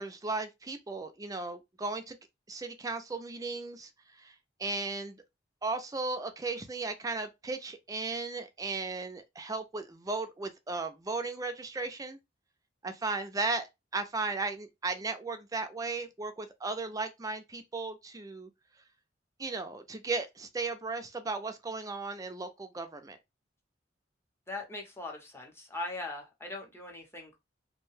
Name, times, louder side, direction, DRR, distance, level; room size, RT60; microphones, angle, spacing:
voice 1, 0.0-2.2 2.5-4.3 4.6-5.2 5.6-12.2 12.8-13.7 13.9-18.5 19.4-23.2, right 3 dB, 20° right, 0.4 m, -36 dB
voice 2, 24.5-27.4, left 2 dB, 15° left, 0.8 m, -40 dB
2.6 x 2.2 x 3.1 m
head